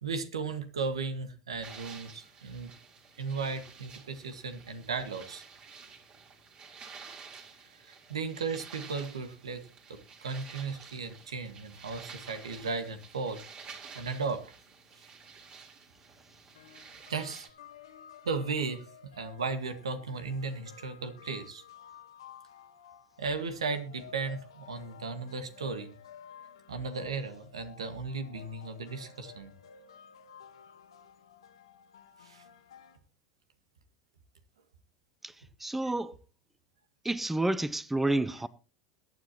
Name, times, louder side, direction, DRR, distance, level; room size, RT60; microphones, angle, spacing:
voice 1, 0.0-2.7 3.2-5.4 7.8-9.6 9.9-13.4 13.9-14.4 17.1-17.5 18.2-18.9 19.2-21.6 23.2-25.9 26.7-29.5 32.2-32.4, right 4 dB, 85° right, 1.7 m, -35 dB
sound 1, 1.6-17.5, right 5 dB, 40° right, 3.9 m, -51 dB
sound 2, 16.5-33.0, left 8 dB, 80° left, 1.6 m, -53 dB
voice 2, 35.6-36.2 37.0-38.5, right 2 dB, 5° right, 0.7 m, -29 dB
22.0 x 9.4 x 3.0 m
hypercardioid pair, 85°, 3 cm